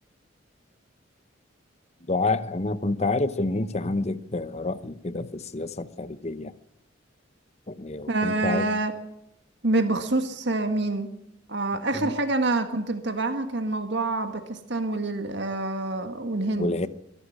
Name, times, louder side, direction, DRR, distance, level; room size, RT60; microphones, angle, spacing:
voice 1, 2.1-6.5 7.7-8.7 11.7-12.1 16.6-16.9, left 2 dB, 35° left, 0.9 m, -28 dB
voice 2, 8.1-8.9 9.6-11.1 11.5-16.8, right 2 dB, 60° right, 1.8 m, -26 dB
22.5 x 11.5 x 10.0 m
head